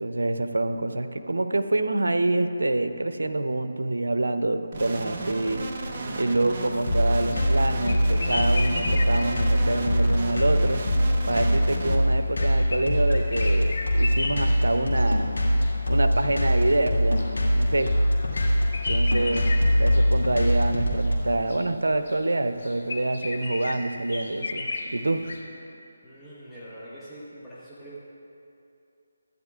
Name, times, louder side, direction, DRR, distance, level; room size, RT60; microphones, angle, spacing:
voice 1, 0.0-5.6 6.2-10.9 11.3-15.3 15.9-17.3 17.6-18.0 18.9-25.2, right 2 dB, 85° right, 9 dB, 0.6 m, -26 dB
sound 1, 4.7-12.0, right 2 dB, 40° right, 0.9 m, -34 dB
sound 2, 6.9-21.1, equal, 85° left, 2.4 m, -22 dB
sound 3, 7.2-25.4, left 2 dB, 60° left, 1.1 m, -36 dB
voice 2, 26.0-28.0, right 1 dB, 5° left, -13 dB, 1.2 m, -44 dB
14.5 x 9.7 x 2.4 m, 2.7 s
figure-of-eight pair, 160°, 0 cm